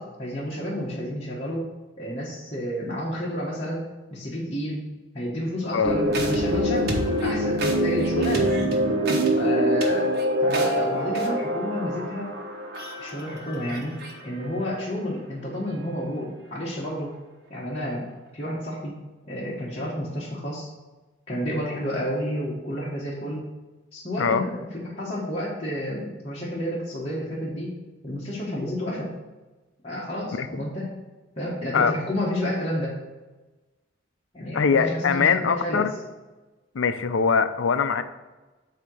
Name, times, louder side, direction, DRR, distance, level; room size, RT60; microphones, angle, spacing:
voice 1, 0.0-1.7 2.0-4.8 5.1-6.9 7.2-8.6 9.4-10.1 10.4-12.3 13.0-14.0 14.2-17.1 17.5-18.0 18.3-19.0 19.3-20.7 21.3-23.4 23.9-27.7 28.0-29.1 29.8-30.9 31.4-33.0 34.3-35.9, equal, 30° left, -7 dB, 1.2 m, -30 dB
sound 1, 5.8-14.1, equal, 55° right, 1.2 m, -24 dB
voice 2, 34.5-35.9 36.7-38.0, left 6 dB, 85° left, 11 dB, 0.5 m, -22 dB
8.5 x 2.9 x 6.2 m, 1.2 s
head